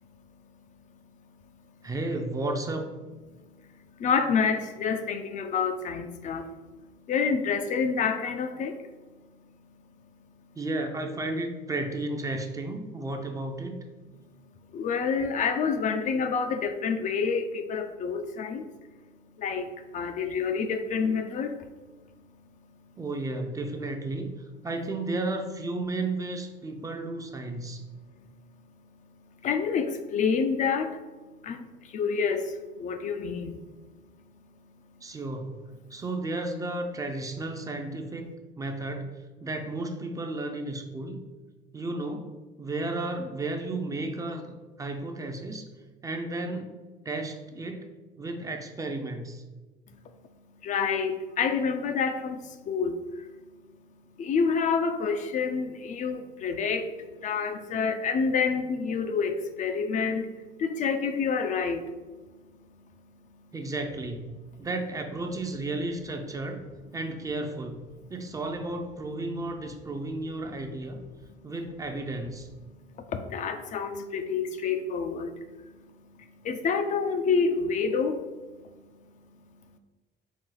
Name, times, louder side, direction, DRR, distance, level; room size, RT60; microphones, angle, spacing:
voice 1, 1.8-3.1 10.6-13.8 23.0-24.3 24.6-27.9 35.0-35.6 35.9-41.2 41.7-45.7 46.0-46.8 47.0-47.9 48.2-49.4 63.5-66.6 66.9-71.0 71.4-72.5, right 2 dB, 20° right, 5 dB, 0.4 m, -33 dB
voice 2, 4.0-6.5 7.1-8.8 14.7-18.7 19.4-21.5 29.4-31.0 31.4-33.6 50.6-53.3 54.2-60.3 60.6-61.9 73.0-75.7 76.4-78.2, left 5 dB, 50° left, 7 dB, 0.4 m, -28 dB
4.2 x 2.3 x 3.8 m, 1.3 s
cardioid pair, 110°, 17 cm